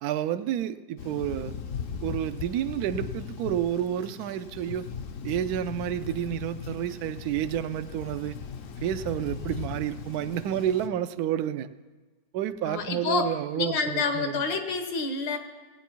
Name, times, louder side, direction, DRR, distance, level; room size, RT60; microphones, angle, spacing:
voice 1, 0.0-1.6 2.0-4.9 5.2-8.4 8.8-11.7 12.3-14.4, right 11 dB, 70° right, 12 dB, 0.9 m, -30 dB
Thunder, 1.0-10.9, left 6 dB, 60° left, 0.8 m, -38 dB
voice 2, 12.6-13.3 13.6-15.4, left 4 dB, 80° left, 7 dB, 1.8 m, -28 dB
17.5 x 9.1 x 4.5 m, 1.3 s
omnidirectional pair, 2.0 m